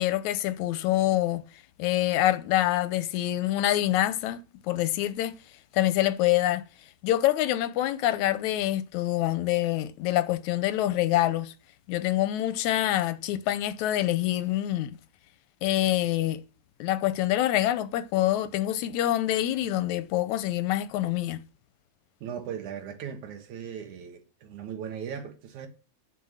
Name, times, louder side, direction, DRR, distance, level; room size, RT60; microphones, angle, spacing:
voice 1, 0.0-1.4 1.8-5.3 5.7-6.6 7.0-11.5 11.9-15.0 15.6-16.4 16.8-21.4, left 14 dB, 85° left, 2.1 m, -26 dB
voice 2, 22.2-25.7, right 8 dB, 80° right, 2.9 m, -38 dB
9.8 x 5.8 x 6.3 m
omnidirectional pair, 3.3 m